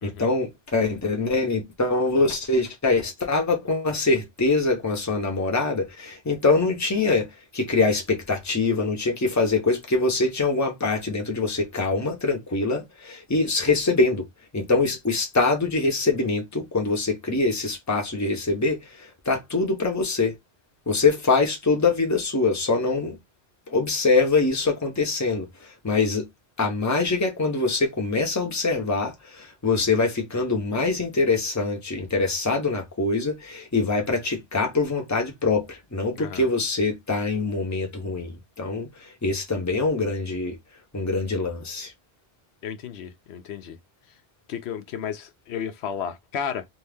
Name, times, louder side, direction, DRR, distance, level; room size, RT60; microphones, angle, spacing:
voice 1, 0.0-14.3 14.5-20.3 20.9-23.2 23.7-25.5 25.8-26.3 26.6-38.9 39.2-40.6 40.9-41.9, left 3 dB, 20° left, 0.8 m, -24 dB
voice 2, 36.2-36.5 42.6-43.8 44.1-44.2 44.5-46.7, left 8 dB, 85° left, 0.9 m, -33 dB
2.8 x 2.4 x 3.4 m
omnidirectional pair, 1.1 m